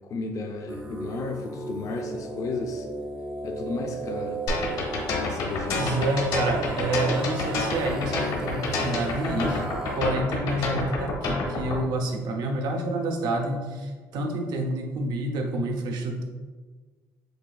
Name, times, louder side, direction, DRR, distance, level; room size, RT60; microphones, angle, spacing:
voice 1, 0.0-2.9 3.4-4.4 5.2-5.9 6.8-6.9, left 3 dB, 45° left, 3 dB, 0.4 m, -33 dB
sound 1, 0.7-10.0, right 2 dB, 10° right, 0.4 m, -36 dB
sound 2, 4.5-11.8, left 3 dB, 70° left, 1.1 m, -28 dB
voice 2, 5.7-9.6 9.9-16.2, right 1 dB, 65° right, 3 dB, 0.6 m, -28 dB
6.5 x 2.4 x 2.3 m, 1.4 s
cardioid pair, 105°, 8 cm